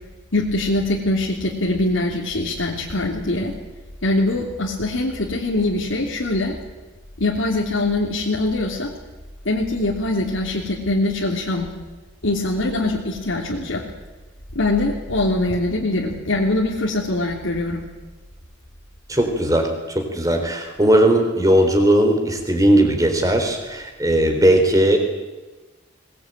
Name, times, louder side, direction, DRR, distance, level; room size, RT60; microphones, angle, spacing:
voice 1, 0.3-3.5 4.0-6.5 7.2-8.9 9.4-11.7 12.2-13.8 14.5-17.8, left 2 dB, 65° left, -2 dB, 3.1 m, -22 dB
voice 2, 19.1-25.0, right 1 dB, 15° right, 4 dB, 3.8 m, -18 dB
22.0 x 20.0 x 9.2 m, 1.2 s
head